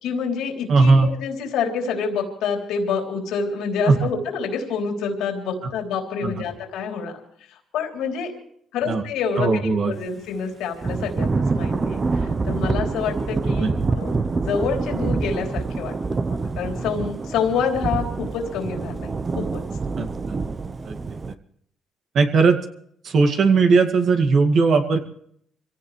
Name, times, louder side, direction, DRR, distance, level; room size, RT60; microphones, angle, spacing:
voice 1, 0.0-7.2 7.7-8.3 8.7-15.9 16.3-19.6, left 5 dB, 90° left, 2 dB, 3.4 m, -27 dB
voice 2, 0.7-1.1 3.9-4.1 6.2-6.3 8.9-9.0 9.4-9.9 13.6-13.7 20.0-20.4 20.8-21.0 22.1-22.6 23.0-25.0, right 4 dB, 60° right, 5 dB, 2.2 m, -18 dB
Thunder / Rain, 10.8-21.3, right 4 dB, 35° right, 0.9 m, -26 dB
25.5 x 17.0 x 3.3 m, 0.66 s
cardioid pair, 90°, 0 cm